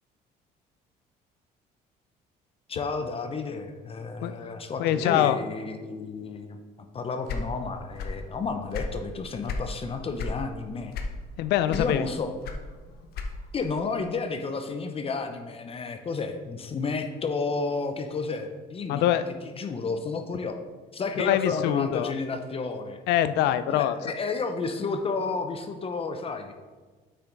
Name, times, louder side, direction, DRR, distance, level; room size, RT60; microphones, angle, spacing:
voice 1, 2.7-6.6 6.9-10.9 11.7-12.3 13.5-19.0 19.6-20.6 20.9-23.0 23.7-26.5, left 4 dB, 35° left, 6 dB, 0.7 m, -31 dB
voice 2, 4.8-5.4 11.4-12.1 18.9-19.3 21.2-22.1 23.1-24.0, left 12 dB, 85° left, 12 dB, 0.5 m, -24 dB
sound 1, 7.2-8.3 8.6-9.7 10.2-10.4 10.9-11.4 11.7-13.6, left 3 dB, 70° left, 0.9 m, -33 dB
8.2 x 5.8 x 4.0 m, 1.4 s
cardioid pair, 110°, 17 cm